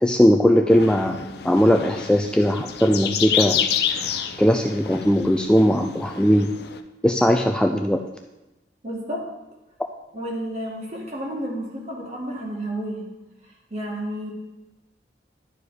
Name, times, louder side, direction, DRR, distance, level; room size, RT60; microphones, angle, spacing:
voice 1, 0.0-3.6 4.4-6.5 7.0-8.0, equal, 5° left, 3 dB, 0.3 m, -19 dB
sound 1, 0.7-6.8, left 8 dB, 60° left, 0.6 m, -29 dB
voice 2, 8.8-9.2 10.1-13.1 13.7-14.3, right 1 dB, 40° right, -2 dB, 2.0 m, -31 dB
11.0 x 5.0 x 4.8 m, 1.0 s
head